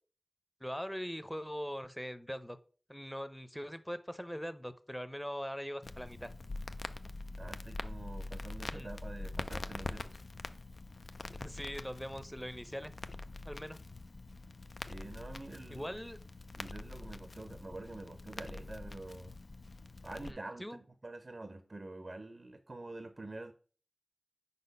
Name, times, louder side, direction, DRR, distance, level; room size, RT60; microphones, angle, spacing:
voice 1, 0.6-2.6 2.9-6.3 8.7-8.9 11.3-12.9 13.5-13.8 15.7-16.2 20.2-20.8, equal, 5° left, 12 dB, 0.6 m, -41 dB
Crackle, 5.8-20.3, left 2 dB, 75° left, 0.4 m, -44 dB
voice 2, 7.4-10.2 14.8-15.9 16.6-19.4 20.0-23.5, right 2 dB, 60° right, 9 dB, 0.6 m, -47 dB
5.1 x 4.1 x 5.3 m, 0.41 s
wide cardioid pair, 45°, 0 cm